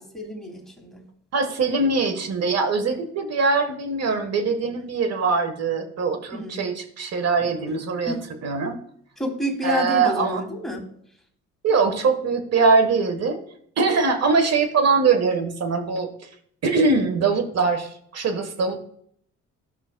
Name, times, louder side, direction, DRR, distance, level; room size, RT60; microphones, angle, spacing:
voice 1, 0.1-1.0 6.3-6.7 8.1-8.2 9.2-10.8, left 1 dB, ahead, 0 dB, 2.5 m, -29 dB
voice 2, 1.3-8.8 9.6-10.4 11.6-13.4 13.8-16.1 16.6-18.8, right 4 dB, 55° right, 8 dB, 1.3 m, -22 dB
13.5 x 5.8 x 2.2 m, 0.66 s
cardioid pair, 90°, 30 cm